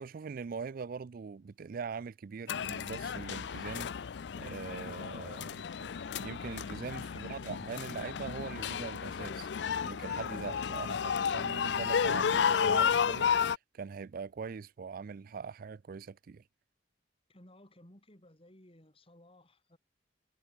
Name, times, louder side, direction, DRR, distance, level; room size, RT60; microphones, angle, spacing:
voice 1, 0.0-3.9 4.4-16.4, right 5 dB, 50° right, 0.4 m, -42 dB
sound 1, 2.5-13.6, left 7 dB, 65° left, 0.4 m, -32 dB
voice 2, 17.3-19.8, left 1 dB, 30° left, 5.5 m, -58 dB
head